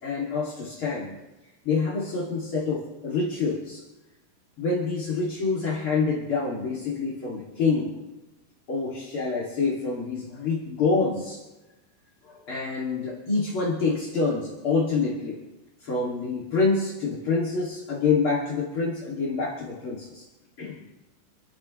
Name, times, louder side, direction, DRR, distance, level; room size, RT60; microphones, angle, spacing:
voice 1, 0.0-1.2 1.6-3.8 4.6-7.9 8.7-11.4 12.2-15.4 15.8-20.2 20.6-20.8, left 4 dB, 35° left, -7 dB, 2.6 m, -27 dB
28.5 x 12.0 x 3.3 m, 1.1 s
omnidirectional pair, 5.7 m